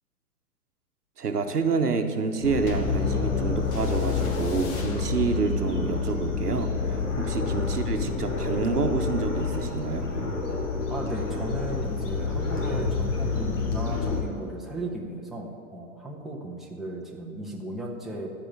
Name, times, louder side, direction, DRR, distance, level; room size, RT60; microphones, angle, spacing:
voice 1, 1.2-10.1, right 4 dB, 85° right, 6 dB, 1.3 m, -28 dB
sound 1, 2.4-14.2, left 5 dB, 50° left, 2.8 m, -28 dB
sound 2, 2.7-11.4 12.2-12.3, left 1 dB, 35° left, 1.6 m, -37 dB
voice 2, 10.9-18.3, right 1 dB, ahead, -2 dB, 1.2 m, -35 dB
13.5 x 5.4 x 8.7 m, 2.5 s
hypercardioid pair, 120°, 45 cm